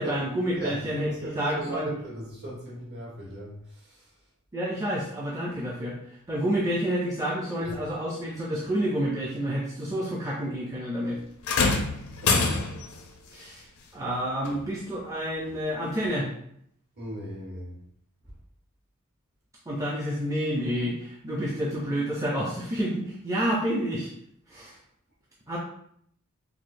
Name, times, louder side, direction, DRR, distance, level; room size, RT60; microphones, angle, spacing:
voice 1, 0.0-1.9 4.5-6.0 6.3-11.2 13.3-13.7 13.9-16.3 19.7-24.1 24.5-24.8 25.5-25.6, equal, 15° right, -5 dB, 0.5 m, -29 dB
voice 2, 0.5-4.1 7.6-7.7 12.2-12.9 16.9-17.8, right 1 dB, 50° right, -5 dB, 1.3 m, -38 dB
sound 1, 11.4-13.0 14.4-14.6 15.5-15.6, left 4 dB, 80° left, 0.5 m, -25 dB
4.7 x 2.0 x 2.6 m, 0.68 s
head